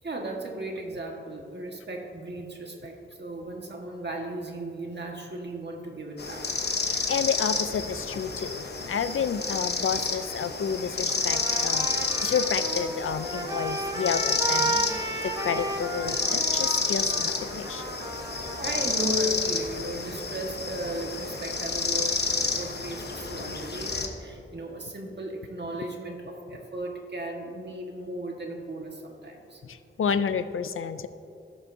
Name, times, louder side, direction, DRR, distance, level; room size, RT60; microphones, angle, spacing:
voice 1, 0.0-6.6 14.5-14.9 18.5-22.2 22.5-29.6, right 1 dB, 55° right, 1 dB, 1.5 m, -36 dB
sound 1, 6.2-24.1, left 4 dB, 55° left, 0.9 m, -30 dB
voice 2, 6.8-14.8 15.2-17.8 23.4-23.5 29.6-31.1, left 6 dB, 85° left, 12 dB, 0.5 m, -30 dB
Trumpet, 11.1-19.1, right 2 dB, 20° right, 1.1 m, -34 dB
17.0 x 7.1 x 2.7 m, 2.8 s
wide cardioid pair, 95°, 21 cm